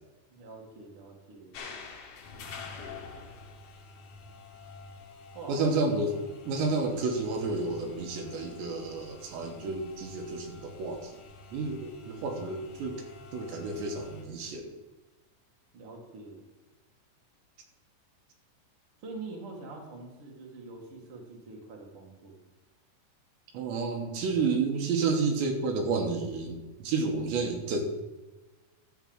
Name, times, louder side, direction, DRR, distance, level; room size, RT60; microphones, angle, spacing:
voice 1, 0.3-1.6 5.3-5.7 15.7-16.4 19.0-22.4, right 3 dB, 45° right, -1 dB, 1.9 m, -45 dB
sound 1, 1.5-14.2, left 4 dB, 65° left, 2.1 m, -48 dB
voice 2, 5.5-6.2 6.5-11.1 11.5-13.0 13.3-14.7 23.5-27.8, right 4 dB, 75° right, 2 dB, 3.3 m, -30 dB
12.5 x 4.8 x 7.3 m, 1.2 s
omnidirectional pair, 5.4 m